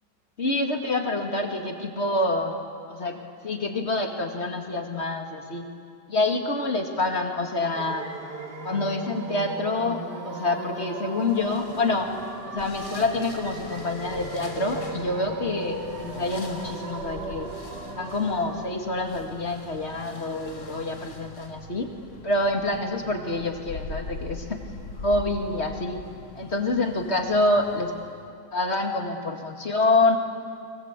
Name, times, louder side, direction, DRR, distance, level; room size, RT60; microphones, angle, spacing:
voice 1, 0.4-2.6 2.9-5.7 6.1-8.1 8.6-12.1 12.4-17.5 18.0-21.9 22.2-24.6 25.0-26.0 26.3-27.9 28.5-30.2, left 2 dB, 35° left, 3 dB, 2.5 m, -27 dB
sound 1, 7.7-18.7, right 3 dB, 65° right, 2.9 m, -37 dB
sound 2, 11.2-28.3, left 2 dB, 70° left, 3.0 m, -42 dB
30.0 x 24.0 x 8.3 m, 2.4 s
omnidirectional pair, 1.9 m